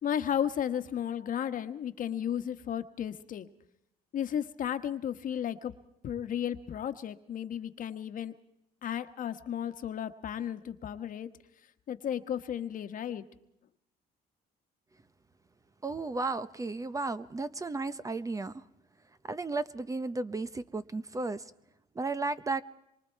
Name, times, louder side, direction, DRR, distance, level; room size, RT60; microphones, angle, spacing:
voice 1, 0.0-3.5 4.1-5.7 6.0-8.3 8.8-11.3 11.9-13.2, left 9 dB, 50° left, 9 dB, 1.3 m, -34 dB
voice 2, 15.8-18.6 19.3-21.5 21.9-22.6, right 3 dB, 20° right, 14 dB, 0.8 m, -34 dB
26.5 x 23.5 x 4.6 m, 0.82 s
cardioid pair, 110°, 17 cm